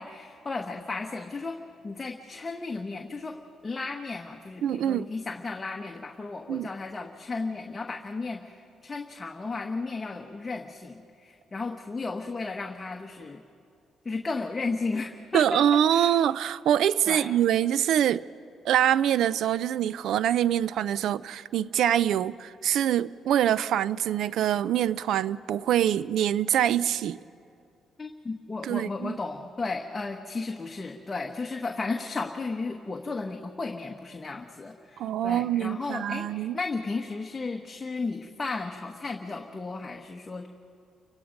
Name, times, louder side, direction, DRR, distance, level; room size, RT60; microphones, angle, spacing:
voice 1, 0.0-1.6 1.8-3.4 3.6-13.4 14.0-16.2 17.1-17.3 28.0-40.5, left 3 dB, 25° left, 1.2 m, -34 dB
voice 2, 4.6-5.1 6.5-6.7 15.3-18.2 18.6-27.2 28.6-29.2 35.0-36.6, right 10 dB, 75° right, 0.5 m, -24 dB
30.0 x 18.0 x 5.2 m
cardioid pair, 90°, 0 cm